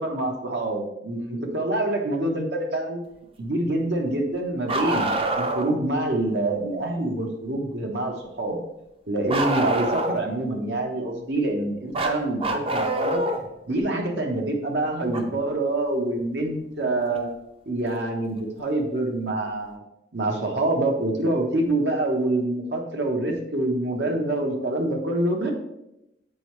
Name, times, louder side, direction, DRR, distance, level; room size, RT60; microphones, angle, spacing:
voice 1, 0.0-3.0 3.4-5.1 5.4-8.6 9.1-13.2 13.7-17.3 17.7-19.8 20.1-25.5, right 2 dB, 75° right, 1 dB, 1.1 m, -26 dB
Bark, 4.7-5.8 9.3-10.3 11.9-13.4 15.1-15.2 17.1-17.2 18.3-18.4, right 1 dB, 30° right, 0.5 m, -25 dB
7.7 x 4.4 x 3.2 m, 0.86 s
head